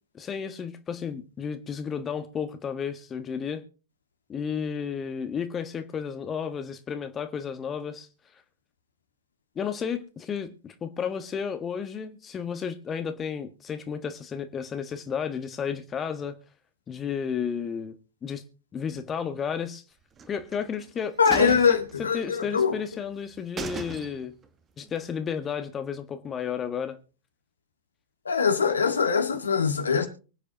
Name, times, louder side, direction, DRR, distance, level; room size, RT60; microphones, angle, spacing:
voice 1, 0.1-3.6 4.3-8.1 9.5-16.3 16.9-17.9 18.2-18.4 18.7-19.8 20.3-21.6 22.1-24.3 24.8-27.0, left 7 dB, 25° left, 1.3 m, -32 dB
sound 1, 20.2-20.9 21.2-22.5 22.9-23.0 23.3-23.4 23.6-24.5 24.8-24.9, right 5 dB, 25° right, 1.4 m, -38 dB
voice 2, 21.2-22.7 28.3-30.1, left 6 dB, 75° left, 1.8 m, -22 dB
24.0 x 9.0 x 2.9 m
figure-of-eight pair, 90°, 0 cm